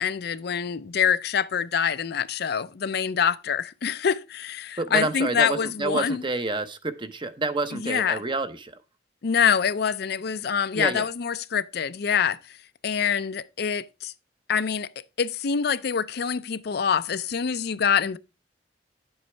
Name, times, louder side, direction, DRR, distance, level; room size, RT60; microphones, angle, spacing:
voice 1, 0.0-6.2 7.7-8.2 9.2-12.4 12.8-14.1 14.5-14.9 15.2-18.2, left 7 dB, 60° left, 0.5 m, -25 dB
voice 2, 4.8-8.8 10.7-11.1, right 2 dB, 25° right, 0.8 m, -28 dB
9.9 x 7.9 x 3.3 m
head